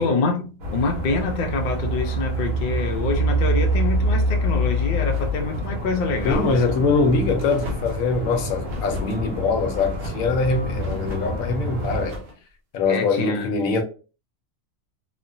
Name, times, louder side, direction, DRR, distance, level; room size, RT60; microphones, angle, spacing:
voice 1, 0.0-6.9 12.9-13.5, left 3 dB, 60° left, 0.5 m, -26 dB
sound 1, 0.6-12.1, equal, 70° right, 1.3 m, -26 dB
sound 2, 1.0-3.1 3.4-4.0 4.4-5.7 6.1-6.8 7.4-8.0 8.6-9.2 9.7-10.3 10.7-11.4 11.8-12.4, left 1 dB, 50° right, 0.9 m, -39 dB
voice 2, 6.2-12.2 12.7-13.8, left 3 dB, 85° left, 1.1 m, -23 dB
3.0 x 2.1 x 2.6 m
omnidirectional pair, 1.4 m